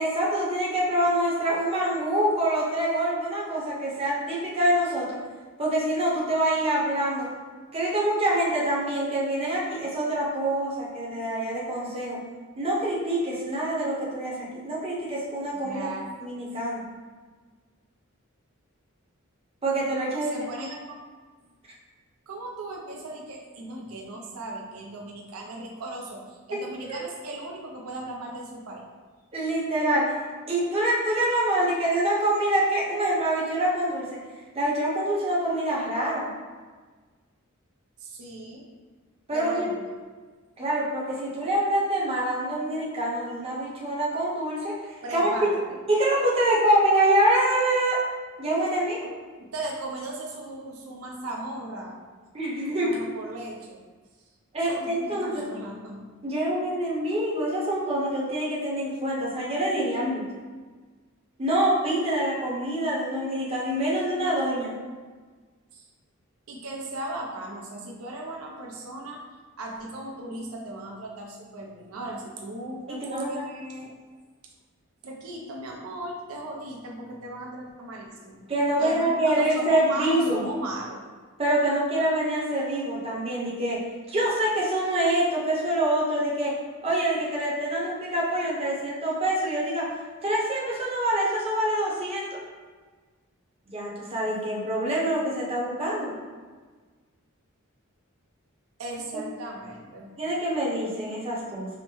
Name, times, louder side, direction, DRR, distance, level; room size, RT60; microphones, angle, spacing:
voice 1, 0.0-5.2 5.6-7.3 7.7-12.2 12.6-14.4 14.6-15.9 16.2-16.8 19.6-20.4 26.9-27.0 29.3-30.1 30.5-34.1 34.5-36.3 39.3-39.7 40.6-45.5 45.9-48.0 48.4-49.1 52.3-52.9 54.5-55.4 56.2-60.2 61.4-64.8 73.0-73.4 78.5-80.4 81.4-89.9 90.2-92.4 93.7-96.1 99.1-99.2 100.2-101.7, right 1 dB, 30° right, -5 dB, 0.8 m, -25 dB
voice 2, 15.5-16.4 20.3-21.0 22.3-28.9 38.0-38.7 39.3-39.9 45.0-45.8 49.4-52.0 52.7-53.8 54.6-56.1 65.7-65.8 66.5-69.2 69.6-74.0 75.0-78.5 78.8-81.0 98.8-100.1, right 1 dB, 80° right, -1 dB, 0.5 m, -37 dB
4.9 x 2.1 x 3.0 m, 1.4 s
head